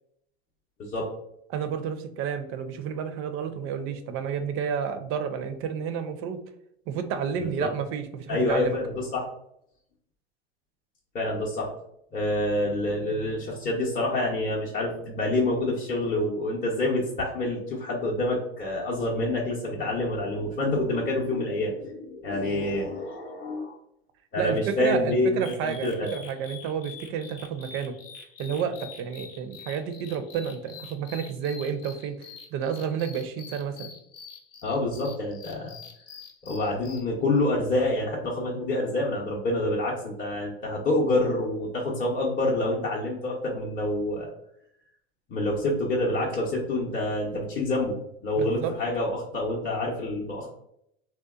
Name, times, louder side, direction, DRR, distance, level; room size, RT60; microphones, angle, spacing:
voice 1, 1.5-6.4 6.9-8.8 24.4-28.0 28.4-33.9 48.4-48.7, right 7 dB, 45° right, 9 dB, 0.4 m, -31 dB
voice 2, 7.4-7.7 8.3-9.3 11.1-11.7 12.1-23.8 24.3-26.1 34.6-35.8 36.4-44.3 45.3-48.0 48.2-50.5, left 1 dB, 30° left, -4 dB, 0.6 m, -27 dB
sound 1, 25.4-37.0, left 6 dB, 65° left, 0.6 m, -46 dB
2.8 x 2.1 x 2.3 m, 0.74 s
hypercardioid pair, 95°, 32 cm